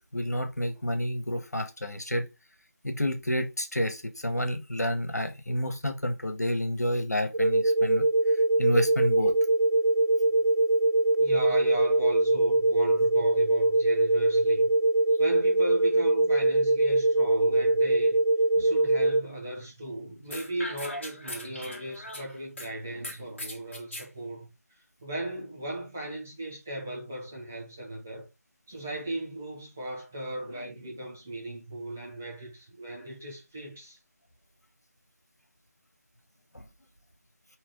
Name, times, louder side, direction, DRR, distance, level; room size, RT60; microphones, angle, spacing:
voice 1, 0.1-2.3 2.8-8.1 8.6-9.3 18.6-18.7 20.9-21.0 36.5-36.6, equal, 75° left, 1.3 m, -29 dB
sound 1, 7.3-19.2, right 2 dB, 90° right, 0.4 m, -23 dB
voice 2, 11.2-14.7 15.2-18.2 18.6-24.5 25.0-28.3 28.7-34.0, right 1 dB, 5° right, 0.3 m, -37 dB
sound 2, 20.3-22.7 23.0-24.1, left 1 dB, 45° left, 1.3 m, -40 dB
4.6 x 3.1 x 3.6 m
figure-of-eight pair, 160°, 9 cm